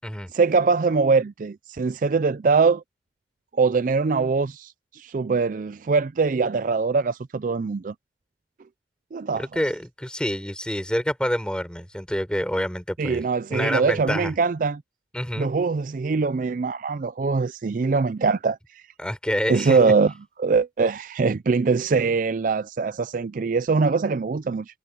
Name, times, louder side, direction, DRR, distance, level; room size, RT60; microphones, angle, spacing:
voice 1, 0.3-2.8 3.5-7.9 9.1-9.4 13.0-14.8 15.4-18.6 19.5-20.1 20.4-24.7, right 4 dB, 50° right, 0.4 m, -22 dB
voice 2, 9.4-13.2 13.5-14.3 15.1-15.5 19.0-19.8, equal, 5° left, 5.4 m, -27 dB
head